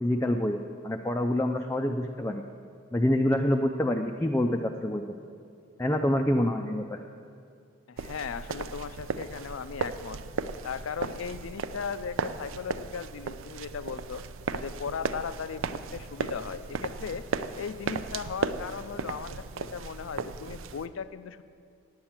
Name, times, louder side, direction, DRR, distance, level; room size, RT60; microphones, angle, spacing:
voice 1, 0.0-0.6 0.8-2.4 2.9-5.0 5.8-7.0, left 1 dB, 10° left, 3 dB, 0.3 m, -26 dB
voice 2, 7.9-10.2 10.6-14.2 14.5-17.3 17.5-21.4, left 6 dB, 75° left, 14 dB, 0.4 m, -37 dB
sound 1, 8.0-20.9, right 5 dB, 70° right, 0.4 m, -36 dB
9.5 x 8.7 x 7.3 m, 2.3 s
head